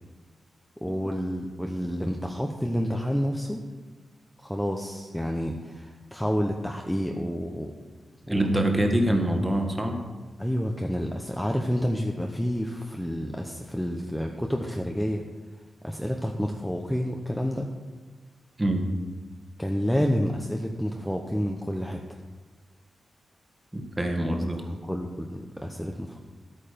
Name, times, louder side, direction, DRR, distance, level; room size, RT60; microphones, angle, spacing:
voice 1, 0.8-3.6 4.4-7.7 8.3-8.5 10.4-15.2 15.8-17.7 19.6-22.0 24.7-26.2, equal, ahead, 2 dB, 0.8 m, -29 dB
voice 2, 8.3-10.0 18.6-18.8 23.7-24.6, right 1 dB, 15° right, 3 dB, 1.6 m, -25 dB
12.5 x 8.8 x 5.2 m, 1.4 s
wide cardioid pair, 120°, 0 cm